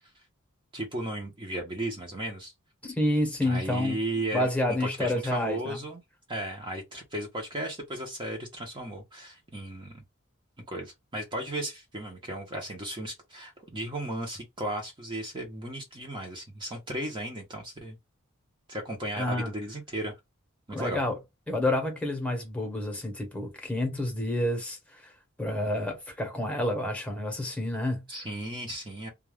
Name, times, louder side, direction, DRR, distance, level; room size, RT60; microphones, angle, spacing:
voice 1, 0.7-2.5 3.4-6.0 6.3-10.0 10.7-18.0 18.7-20.2 20.7-21.0 28.1-29.1, right 1 dB, 25° right, 0.7 m, -35 dB
voice 2, 2.8-3.9 4.3-5.8 19.1-19.5 20.7-21.2 21.5-25.1 25.4-28.0, left 1 dB, 5° left, 0.9 m, -29 dB
2.3 x 2.2 x 3.2 m
head